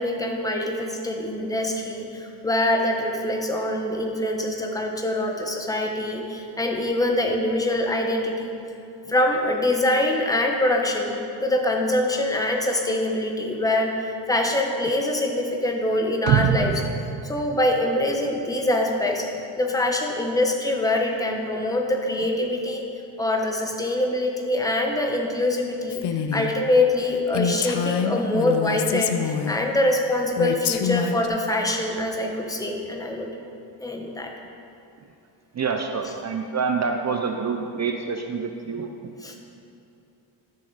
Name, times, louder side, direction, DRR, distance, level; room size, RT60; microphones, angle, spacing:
voice 1, 0.0-8.5 9.1-16.9 17.2-19.3 19.6-22.8 23.2-26.0 26.3-33.3 33.8-34.3 39.2-39.4, left 1 dB, 5° left, 2 dB, 1.0 m, -24 dB
sound 1, 16.3-18.4 18.8-18.9, right 9 dB, 85° right, 0.7 m, -25 dB
Female speech woman speaking, 25.9-26.5 26.9-27.0 27.3-29.6 30.4-31.3, left 7 dB, 60° left, 0.7 m, -26 dB
voice 2, 35.5-38.9, right 5 dB, 35° right, 4 dB, 0.6 m, -27 dB
13.0 x 6.7 x 4.0 m, 2.7 s
cardioid pair, 110°, 47 cm